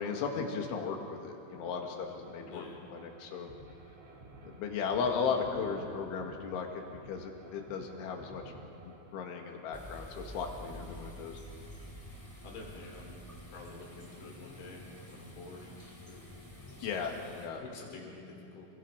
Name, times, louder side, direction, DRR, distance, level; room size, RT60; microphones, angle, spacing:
voice 1, 0.0-3.5 4.4-8.4 8.8-11.4 16.8-17.1 17.4-17.6, left 5 dB, 85° left, 2 dB, 4.4 m, -36 dB
sound 1, 1.5-10.4, right 1 dB, 75° right, 5.8 m, -53 dB
voice 2, 2.4-2.8 10.7-11.0 12.1-12.2 12.4-13.2 13.5-15.7 16.0-16.2 16.7-16.9 17.2-18.7, left 3 dB, 70° left, 0 dB, 5.7 m, -49 dB
sound 2, 9.7-17.5, equal, 5° left, 2.2 m, -49 dB
28.5 x 23.0 x 5.3 m, 3.0 s
omnidirectional pair, 5.4 m